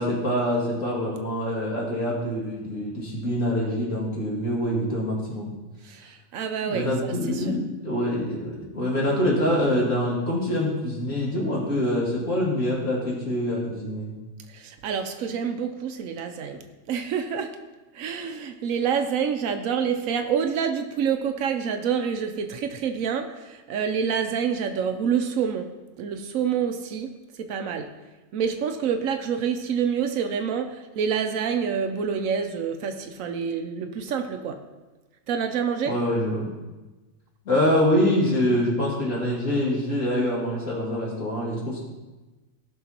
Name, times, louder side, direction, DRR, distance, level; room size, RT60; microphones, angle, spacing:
voice 1, 0.0-5.5 6.6-14.1 35.9-36.6 37.4-41.8, left 1 dB, 75° left, -5 dB, 2.7 m, -25 dB
voice 2, 5.9-7.4 14.5-16.6 16.9-17.5 17.9-25.7 26.0-27.1 27.4-27.9 28.3-34.6 35.3-35.9, right 7 dB, 85° right, 6 dB, 1.1 m, -27 dB
16.0 x 6.1 x 2.9 m, 1.2 s
omnidirectional pair, 1.4 m